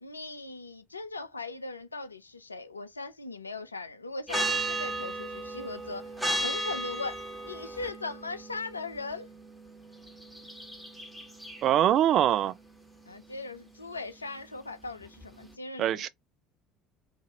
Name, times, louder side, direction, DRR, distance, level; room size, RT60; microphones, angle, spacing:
voice 1, 0.0-6.1 6.4-9.3 13.1-16.1, left 3 dB, 85° left, 0.4 m, -39 dB
sound 1, 4.3-15.5, right 1 dB, ahead, 1.3 m, -36 dB
voice 2, 11.6-12.5 15.8-16.1, right 11 dB, 50° right, 0.3 m, -23 dB
2.7 x 2.5 x 3.0 m
figure-of-eight pair, 60°, 0 cm